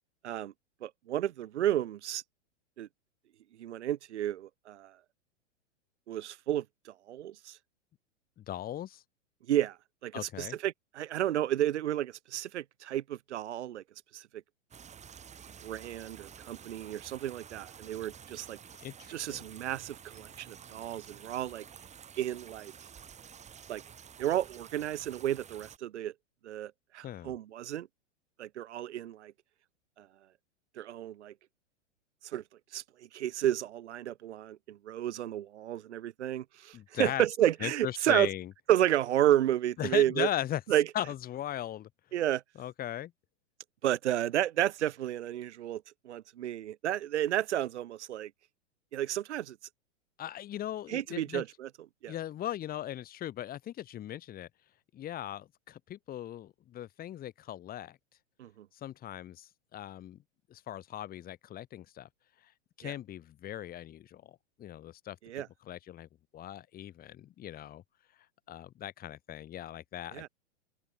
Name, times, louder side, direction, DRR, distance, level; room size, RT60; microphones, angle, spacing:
voice 1, 0.8-2.2 2.8-2.9 3.6-4.9 6.1-7.6 9.5-9.8 10.0-13.8 14.1-14.3 15.6-18.6 19.1-21.6 22.2-22.7 23.7-23.8 24.2-26.1 26.4-27.9 28.4-29.3 30.0-30.1 30.8-31.3 32.2-32.4 32.7-32.8 33.1-38.3 38.7-40.3 40.7-40.8 42.1-42.4 43.8-48.3 48.9-49.6 50.9-51.7 52.0-52.1 58.4-58.5 62.8-62.9 65.2-65.5 70.1-70.3, right 12 dB, 70° right, 0.9 m, -31 dB
voice 2, 8.4-9.0 10.1-10.6 18.8-19.4 27.0-27.4 36.7-37.3 37.6-38.5 39.8-40.6 40.9-41.9 42.6-43.1 50.2-51.4 52.1-54.5 54.9-58.0 58.7-60.2 60.5-62.1 62.4-62.5 62.8-65.2 65.6-67.8 68.5-70.3, left 12 dB, 25° left, 1.7 m, -38 dB
sound 1, 14.7-25.8, right 8 dB, 20° right, 2.7 m, -51 dB
open air
hypercardioid pair, 105°, 36 cm